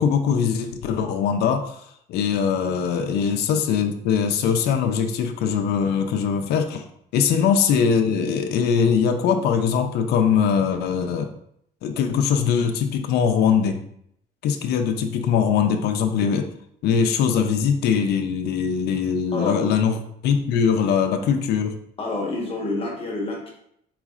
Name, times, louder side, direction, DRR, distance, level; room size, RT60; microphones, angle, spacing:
voice 1, 0.0-1.8 2.1-6.8 7.1-11.3 11.8-13.8 14.4-16.5 16.8-20.0 20.2-21.7, left 7 dB, 75° left, 6 dB, 0.5 m, -21 dB
voice 2, 19.3-19.6 22.0-23.5, left 2 dB, 35° left, -1 dB, 1.1 m, -28 dB
4.0 x 4.0 x 2.4 m, 0.71 s
cardioid pair, 110°, 17 cm